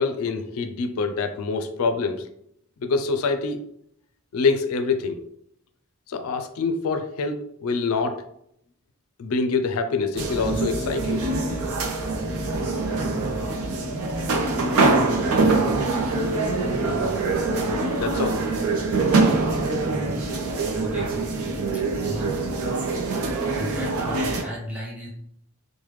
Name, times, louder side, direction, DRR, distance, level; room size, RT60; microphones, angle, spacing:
voice 1, 0.0-2.3 2.8-3.6 4.3-5.2 6.1-8.2 9.2-11.2 17.9-18.4, left 4 dB, 80° left, 7 dB, 0.4 m, -25 dB
sound 1, 10.1-24.4, right 3 dB, 80° right, 0.5 m, -24 dB
voice 2, 20.8-21.1 21.7-22.4 23.6-25.1, equal, 5° right, -4 dB, 0.7 m, -35 dB
3.2 x 2.1 x 3.0 m, 0.72 s
head